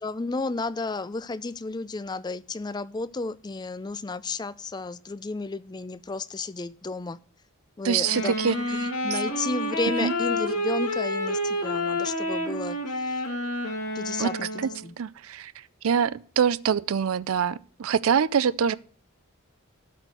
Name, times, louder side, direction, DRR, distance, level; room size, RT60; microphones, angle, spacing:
voice 1, 0.0-7.2 7.8-13.2 14.0-14.9, left 3 dB, 20° left, 0.4 m, -33 dB
voice 2, 7.8-8.6 10.0-10.1 14.2-14.3 14.6-14.7 15.0-15.5 15.8-18.7, right 7 dB, 75° right, 0.4 m, -24 dB
Wind instrument woodwind instrument, 8.0-14.9, left 1 dB, 90° left, 2.5 m, -29 dB
12.5 x 4.3 x 7.8 m
head